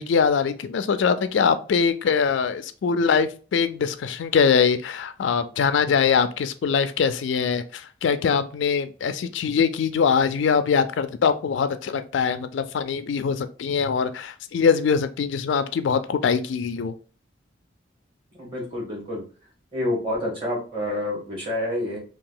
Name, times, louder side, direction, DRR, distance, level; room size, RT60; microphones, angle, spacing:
voice 1, 0.0-16.9, left 6 dB, 80° left, 11 dB, 0.4 m, -23 dB
voice 2, 18.4-19.2 19.7-22.0, left 1 dB, 30° right, -4 dB, 1.6 m, -28 dB
2.8 x 2.4 x 3.8 m, 0.37 s
head